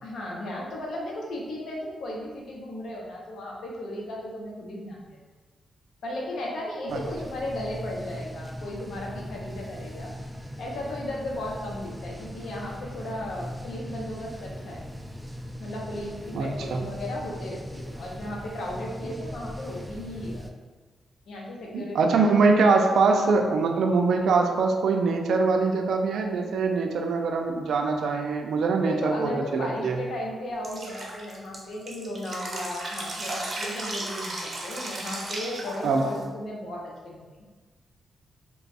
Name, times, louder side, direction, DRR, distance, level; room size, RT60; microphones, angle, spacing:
voice 1, 0.0-5.0 6.0-10.1 10.6-14.8 15.6-20.4 21.3-22.4 28.9-37.3, left 1 dB, 80° left, -2 dB, 0.7 m, -35 dB
sound 1, 6.9-20.5, equal, 10° right, 0.3 m, -39 dB
voice 2, 16.3-16.8 21.7-30.0 35.8-36.0, right 4 dB, 80° right, 3 dB, 0.4 m, -23 dB
Drip, 30.6-36.2, right 2 dB, 45° right, 0.7 m, -35 dB
3.0 x 2.2 x 4.2 m, 1.3 s
cardioid pair, 100°, 0 cm